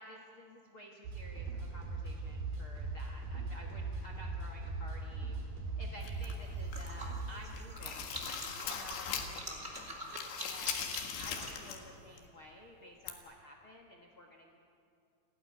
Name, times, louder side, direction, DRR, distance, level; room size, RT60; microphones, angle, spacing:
voice 1, 0.0-5.4 5.8-9.8 10.4-14.6, equal, 50° left, 1 dB, 1.6 m, -53 dB
sound 1, 1.0-7.4, right 3 dB, 65° right, 4.2 m, -40 dB
sound 2, 6.0-7.0 7.4-9.5 9.8-11.9 12.2-12.3 13.1-13.2, left 7 dB, 85° left, 3.8 m, -40 dB
sound 3, 6.1-12.3, right 1 dB, 15° right, 2.8 m, -46 dB
29.5 x 12.5 x 9.7 m, 2.4 s
omnidirectional pair, 4.7 m